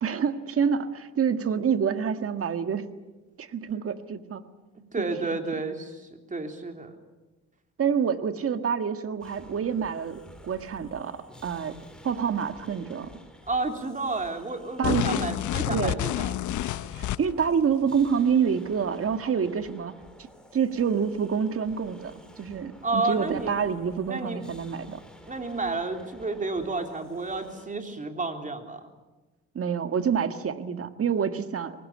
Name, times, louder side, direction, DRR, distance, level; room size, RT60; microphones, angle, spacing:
voice 1, 0.0-2.9 3.4-4.4 5.0-5.6 7.8-11.7 12.0-13.1 14.8-15.2 15.7-16.0 16.9-19.9 20.5-25.0 29.6-31.9, right 7 dB, 50° right, 9 dB, 1.7 m, -27 dB
voice 2, 4.9-6.9 13.4-16.4 22.8-23.5 24.1-24.4 25.3-28.9, right 3 dB, 25° right, 5 dB, 3.4 m, -31 dB
sound 1, 9.2-27.7, equal, 5° left, 4.0 m, -51 dB
sound 2, 14.8-17.5, left 14 dB, 75° left, 0.7 m, -29 dB
24.0 x 19.5 x 8.6 m, 1.2 s
cardioid pair, 90°, 30 cm